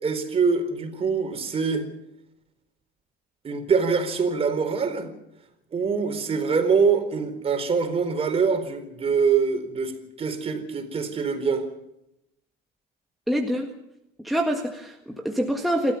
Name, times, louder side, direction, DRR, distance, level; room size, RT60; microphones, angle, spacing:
voice 1, 0.0-1.8 3.4-5.1 5.7-9.9 10.2-11.7, right 5 dB, 30° right, 6 dB, 4.3 m, -24 dB
voice 2, 13.3-13.7 14.2-16.0, equal, ahead, 1 dB, 1.8 m, -25 dB
28.0 x 13.5 x 7.0 m, 0.83 s
cardioid pair, 120°, 20 cm